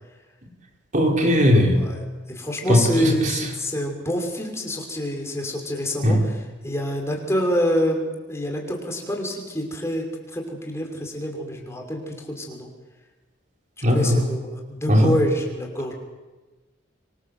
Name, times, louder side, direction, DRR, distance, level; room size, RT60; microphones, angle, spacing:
voice 1, 0.9-1.8 2.7-3.1 6.0-6.2 13.8-14.2 14.9-15.1, left 1 dB, 40° right, 2 dB, 4.9 m, -18 dB
voice 2, 1.7-10.1 10.3-12.7 13.9-15.9, equal, 15° left, 1 dB, 5.9 m, -27 dB
26.5 x 25.5 x 8.2 m, 1.2 s
head